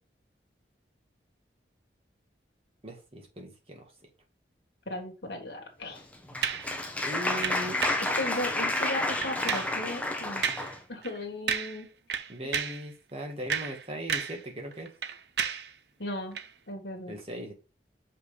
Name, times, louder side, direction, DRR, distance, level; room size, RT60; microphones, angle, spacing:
voice 1, 2.8-3.9 7.0-7.8 12.3-14.9 17.1-17.5, equal, 35° right, 2 dB, 1.8 m, -38 dB
voice 2, 4.9-6.0 8.2-10.4 10.9-11.9 16.0-16.4 16.7-17.1, left 1 dB, 70° left, 2 dB, 1.7 m, -36 dB
Applause, 5.9-10.8, left 2 dB, 10° left, 1.0 m, -30 dB
sound 1, 6.4-6.7 7.4-8.1 8.7-8.9 9.2-9.8 10.4-10.7 11.0-11.2 11.5-11.8 12.1-12.8 13.3-14.4 14.7-15.7 16.3-16.5, right 7 dB, 75° right, 0.7 m, -32 dB
6.6 x 5.1 x 3.3 m, 0.31 s
head